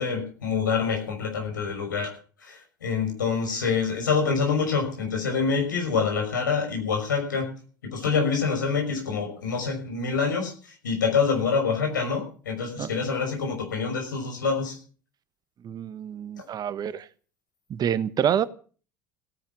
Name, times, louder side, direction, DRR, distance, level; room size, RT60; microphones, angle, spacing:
voice 1, 0.0-2.1 2.4-7.5 7.8-14.8, left 5 dB, 80° left, 3 dB, 5.9 m, -26 dB
voice 2, 15.6-17.1 17.7-18.4, right 9 dB, 40° right, 15 dB, 1.2 m, -27 dB
17.0 x 10.0 x 7.4 m, 0.41 s
figure-of-eight pair, 65°, 10 cm